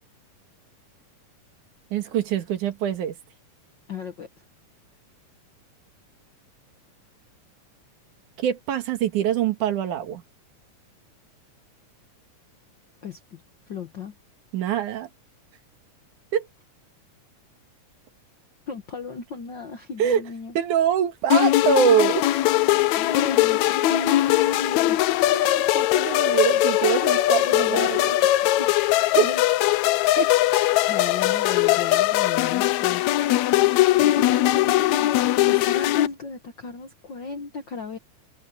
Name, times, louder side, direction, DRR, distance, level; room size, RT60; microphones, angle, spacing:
voice 1, 1.9-3.1 8.4-10.2 14.5-15.1 16.3-16.4 20.0-20.2 20.6-22.3 25.3-28.1 29.1-29.3 30.2-30.3, right 8 dB, 75° right, 3.0 m, -24 dB
voice 2, 3.9-4.3 13.0-13.4 13.7-14.1 18.7-20.6 22.9-25.3 27.4-27.9 28.5-29.4 30.9-33.0 34.0-35.1 35.5-38.0, left 5 dB, 55° left, 1.2 m, -35 dB
sound 1, 21.3-36.1, left 15 dB, 75° left, 1.8 m, -20 dB
omnidirectional pair, 3.7 m